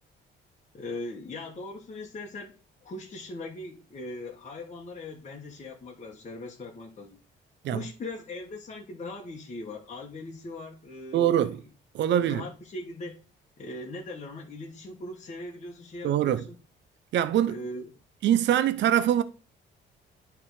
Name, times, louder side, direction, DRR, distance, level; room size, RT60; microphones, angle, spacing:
voice 1, 0.7-2.5 2.8-7.2 7.7-11.6 12.2-13.2 13.6-16.6 17.5-17.9, left 2 dB, 35° left, 1.3 m, -40 dB
voice 2, 11.1-11.6 11.9-12.4 16.0-16.4 17.1-17.5 18.2-19.2, right 10 dB, 65° right, 0.5 m, -23 dB
9.8 x 3.5 x 4.8 m
cardioid pair, 90°, 20 cm